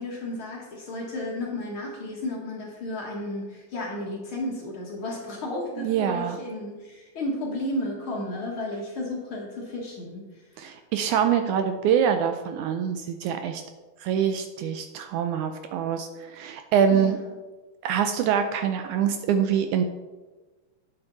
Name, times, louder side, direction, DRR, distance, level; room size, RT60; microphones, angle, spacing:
voice 1, 0.0-10.2 10.5-10.7 16.9-17.3, left 1 dB, 50° left, -2 dB, 1.9 m, -33 dB
voice 2, 5.8-6.4 10.6-13.6 14.0-17.2 17.8-19.8, right 8 dB, 80° right, 7 dB, 1.9 m, -25 dB
9.5 x 7.9 x 4.0 m, 1.2 s
omnidirectional pair, 3.8 m